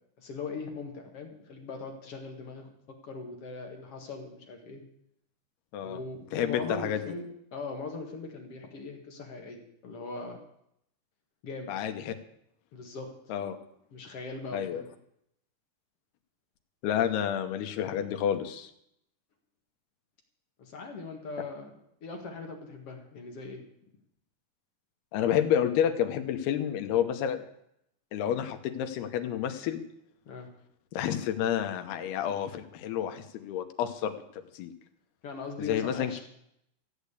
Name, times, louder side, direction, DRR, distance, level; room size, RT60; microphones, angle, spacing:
voice 1, 0.2-2.7 3.0-4.8 5.8-10.4 11.4-11.8 12.7-13.1 13.9-14.9 20.6-23.6 30.3-30.5 35.2-36.2, left 4 dB, 45° left, 2 dB, 2.4 m, -40 dB
voice 2, 6.3-7.0 11.7-12.1 13.3-13.6 14.5-14.8 16.8-18.7 25.1-27.4 28.1-29.8 30.9-34.2 34.5-34.7 35.6-36.2, left 9 dB, 90° left, 7 dB, 3.1 m, -29 dB
15.0 x 8.4 x 8.3 m, 0.75 s
omnidirectional pair, 4.4 m